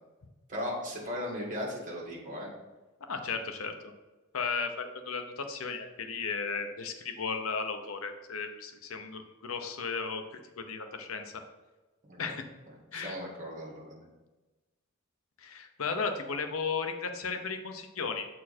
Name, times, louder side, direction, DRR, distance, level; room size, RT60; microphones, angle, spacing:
voice 1, 0.5-2.5 12.0-12.4 12.9-14.1, left 1 dB, 40° right, -3 dB, 2.1 m, -37 dB
voice 2, 3.1-3.7 4.3-11.4 12.2-12.4 12.9-13.1 15.4-18.3, left 5 dB, 90° left, 6 dB, 0.8 m, -35 dB
7.3 x 4.5 x 4.3 m, 1.2 s
head